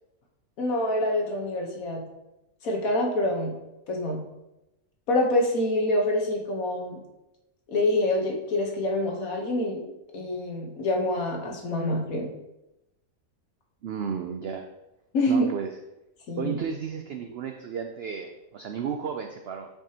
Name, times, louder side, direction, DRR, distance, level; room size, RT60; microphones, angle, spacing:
voice 1, 0.6-2.0 2.6-3.5 3.9-4.2 5.1-7.0 7.7-9.8 10.1-12.3 15.1-15.5 16.3-16.6, left 1 dB, 65° left, 1 dB, 1.5 m, -26 dB
voice 2, 13.8-14.7 15.3-15.7 16.4-19.7, right 7 dB, 75° right, 5 dB, 0.5 m, -33 dB
7.8 x 4.8 x 2.8 m, 0.93 s
omnidirectional pair, 1.6 m